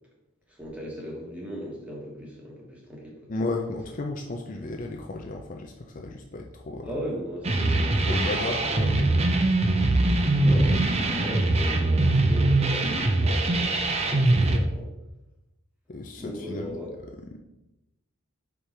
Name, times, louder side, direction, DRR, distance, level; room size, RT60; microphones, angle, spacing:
voice 1, 0.5-3.2 6.8-9.0 10.4-14.9 16.2-16.9, equal, 5° right, -3 dB, 1.4 m, -37 dB
voice 2, 3.3-6.9 8.1-9.4 14.1-14.2 14.5-14.6 15.9-16.8 17.3-17.4, left 2 dB, 40° left, 2 dB, 0.5 m, -34 dB
sound 1, 7.4-14.6, right 2 dB, 30° right, 0.6 m, -22 dB
5.4 x 4.7 x 4.3 m, 0.93 s
head